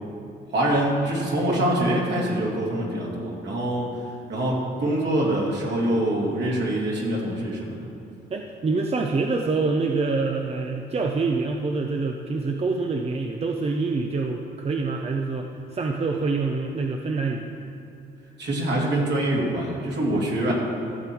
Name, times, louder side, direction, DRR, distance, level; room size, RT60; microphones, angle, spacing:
voice 1, 0.5-3.9 4.3-7.8 18.4-20.5, right 1 dB, 60° right, -3 dB, 2.7 m, -24 dB
voice 2, 8.3-17.5, right 3 dB, 30° right, 2 dB, 0.7 m, -26 dB
14.5 x 6.9 x 4.6 m, 2.7 s
cardioid pair, 90°, 20 cm